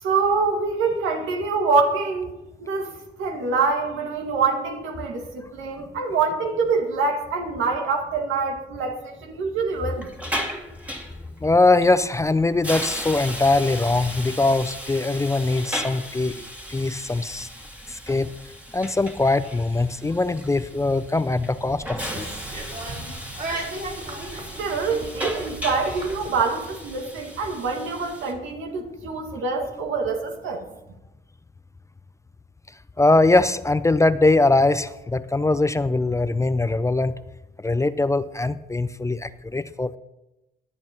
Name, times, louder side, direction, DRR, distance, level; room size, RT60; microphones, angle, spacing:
voice 1, 0.0-2.3 2.6-2.9 3.2-10.1 24.6-30.7, right 4 dB, 85° right, 3 dB, 1.9 m, -25 dB
Hiss, 9.7-28.3, equal, 5° right, 1.9 m, -36 dB
voice 2, 11.4-17.5 17.9-18.3 18.7-22.3 33.0-37.1 37.6-40.0, left 2 dB, 15° left, 14 dB, 0.4 m, -21 dB
sound 1, 21.9-26.3, right 2 dB, 45° right, 5.4 m, -35 dB
23.0 x 8.4 x 2.9 m, 0.97 s
cardioid pair, 90°, 20 cm